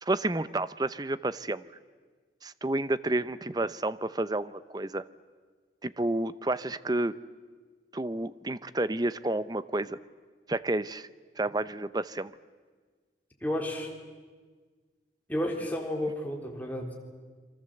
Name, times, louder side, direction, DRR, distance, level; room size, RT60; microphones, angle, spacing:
voice 1, 0.0-1.6 2.4-5.1 5.8-7.2 7.9-10.0 10.5-11.1 11.4-12.3, right 2 dB, 25° right, 15 dB, 0.7 m, -30 dB
voice 2, 13.4-13.9 15.3-16.9, left 1 dB, 10° left, 0 dB, 3.8 m, -32 dB
28.0 x 24.0 x 7.9 m, 1.5 s
head